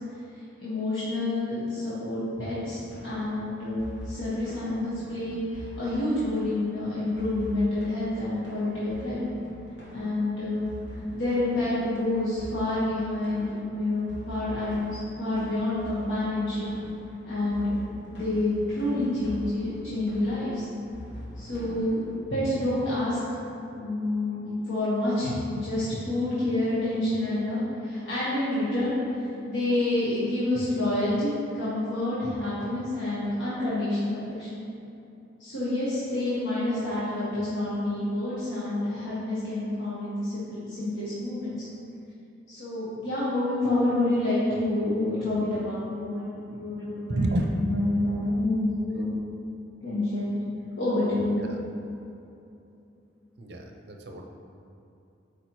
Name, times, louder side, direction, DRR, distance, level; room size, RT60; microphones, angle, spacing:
voice 1, 0.6-9.2 9.9-16.7 17.2-17.7 18.1-20.6 21.4-23.2 23.7-28.9 29.4-34.6 35.4-41.6 42.5-49.2 49.8-50.4 50.8-51.5, left 1 dB, 85° left, -10 dB, 1.4 m, -28 dB
sound 1, 2.3-22.2, equal, 60° left, 1.4 m, -44 dB
voice 2, 47.2-47.8 51.4-51.6 53.4-54.3, right 1 dB, 60° right, 2 dB, 0.6 m, -29 dB
8.5 x 4.6 x 3.1 m, 2.8 s
head